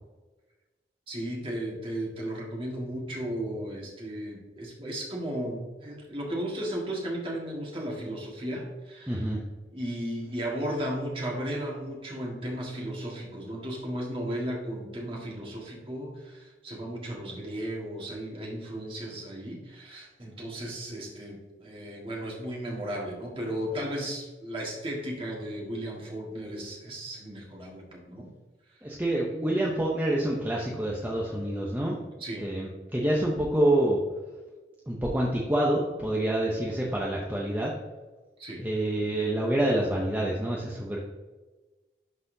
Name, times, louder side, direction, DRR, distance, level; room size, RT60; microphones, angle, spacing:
voice 1, 1.1-9.4 9.7-28.3 32.2-32.5 38.4-38.6, right 1 dB, 30° right, -2 dB, 1.6 m, -35 dB
voice 2, 9.1-9.4 28.8-32.0 32.4-34.0 34.9-37.7 38.6-41.0, right 1 dB, 10° right, -4 dB, 0.7 m, -27 dB
11.0 x 4.1 x 2.7 m, 1.2 s
head